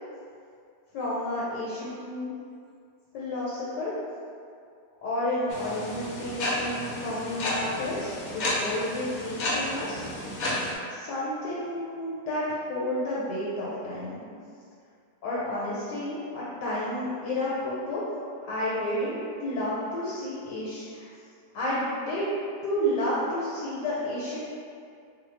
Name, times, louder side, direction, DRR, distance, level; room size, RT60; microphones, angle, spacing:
voice 1, 0.9-2.3 3.1-3.9 5.0-10.0 10.9-14.3 15.2-18.0 18.5-21.1 21.5-22.2 22.6-24.4, left 1 dB, 85° left, -8 dB, 1.3 m, -31 dB
sound 1, 5.5-10.7, left 1 dB, 70° left, 0.9 m, -31 dB
2.6 x 2.3 x 3.1 m, 2.3 s
omnidirectional pair, 1.8 m